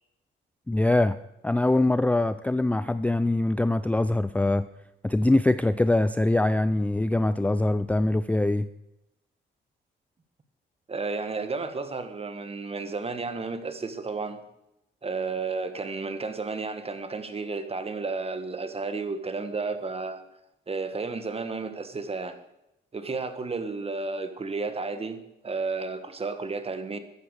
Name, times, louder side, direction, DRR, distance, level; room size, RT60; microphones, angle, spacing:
voice 1, 0.7-1.2 1.4-4.7 5.0-8.7, left 2 dB, 5° left, 0.4 m, -23 dB
voice 2, 10.9-14.4 15.0-20.2 20.7-22.4 22.9-27.0, right 4 dB, 30° right, 1.6 m, -32 dB
14.0 x 10.5 x 6.5 m
cardioid pair, 90°, 20 cm